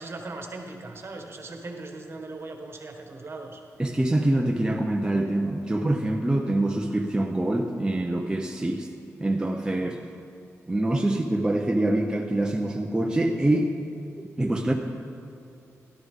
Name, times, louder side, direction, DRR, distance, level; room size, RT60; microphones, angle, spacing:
voice 1, 0.0-3.6 9.7-10.2, right 2 dB, 45° right, 3 dB, 1.5 m, -39 dB
voice 2, 3.8-8.9 9.2-10.0 10.7-13.7 14.4-14.7, right 1 dB, 15° right, 2 dB, 0.7 m, -25 dB
12.5 x 11.5 x 3.7 m, 2.7 s
cardioid pair, 60°, 6 cm